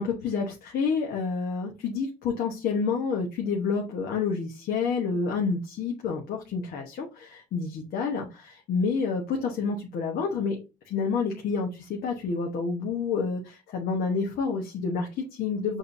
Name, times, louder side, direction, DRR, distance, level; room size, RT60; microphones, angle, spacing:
voice 1, 0.0-10.6 10.8-15.8, left 5 dB, 65° left, 0 dB, 1.0 m, -29 dB
6.5 x 2.7 x 2.6 m, 0.28 s
cardioid pair, 110°, 17 cm